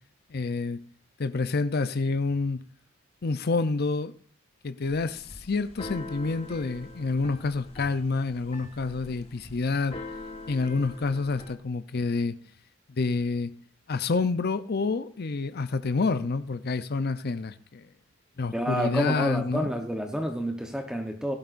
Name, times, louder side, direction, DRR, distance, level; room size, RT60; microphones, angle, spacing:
voice 1, 0.3-0.8 1.2-2.6 3.2-4.1 4.6-10.0 10.5-12.4 13.0-13.5 13.9-17.9 18.4-19.7, left 3 dB, 50° left, 0.6 m, -28 dB
Keyboard (musical), 4.8-11.5, left 2 dB, 30° left, 1.5 m, -43 dB
voice 2, 18.5-21.4, equal, 5° right, 0.9 m, -29 dB
16.5 x 12.0 x 2.5 m
head